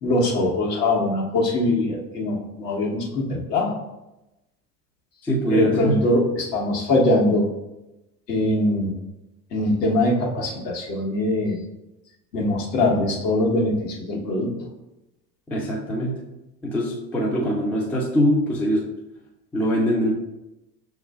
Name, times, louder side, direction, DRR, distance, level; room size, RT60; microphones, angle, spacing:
voice 1, 0.0-3.7 5.5-7.4 8.3-8.9 9.5-11.6 12.3-14.5, left 1 dB, 75° left, -2 dB, 1.1 m, -22 dB
voice 2, 5.2-6.0 12.4-12.5 15.5-16.2 16.6-18.9 19.5-20.1, equal, 5° left, -3 dB, 0.3 m, -23 dB
6.4 x 2.4 x 2.2 m, 0.96 s
figure-of-eight pair, 70°, 49 cm